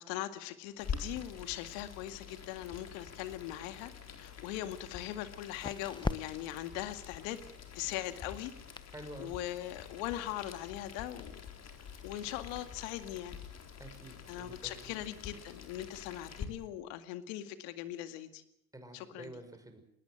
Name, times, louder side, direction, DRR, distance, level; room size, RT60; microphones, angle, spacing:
voice 1, 0.0-7.4 7.7-8.5 9.2-11.4 12.0-13.4 14.3-18.4 18.9-19.3, left 13 dB, 70° left, 10 dB, 2.2 m, -40 dB
Boiling, 0.8-16.5, left 6 dB, 40° left, 4.0 m, -47 dB
sound 1, 4.3-16.7, left 3 dB, 10° left, 0.9 m, -47 dB
voice 2, 8.9-9.3 13.8-15.0 18.7-19.8, right 1 dB, 10° right, 6 dB, 5.8 m, -49 dB
20.5 x 20.0 x 7.9 m, 0.77 s
hypercardioid pair, 75°, 41 cm